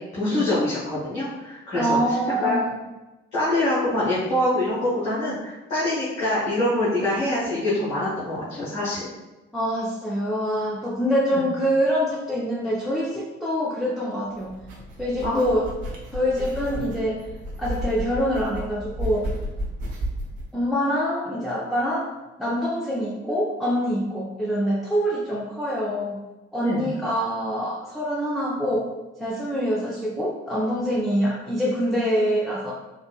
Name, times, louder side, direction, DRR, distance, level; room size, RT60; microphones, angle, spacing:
voice 1, 0.1-2.0 2.4-2.6 3.3-9.1 11.3-11.4 15.2-15.4 26.6-26.9, left 1 dB, 75° left, -12 dB, 1.3 m, -25 dB
voice 2, 1.7-2.7 9.5-14.6 15.0-15.6 16.1-17.3 17.6-19.3 20.5-22.1 22.4-26.2 26.5-28.9 29.2-32.7, equal, ahead, -5 dB, 0.6 m, -25 dB
sound 1, 14.3-20.5, equal, 65° right, 0.9 m, -33 dB
4.4 x 2.5 x 2.4 m, 1.1 s
figure-of-eight pair, 40°, 32 cm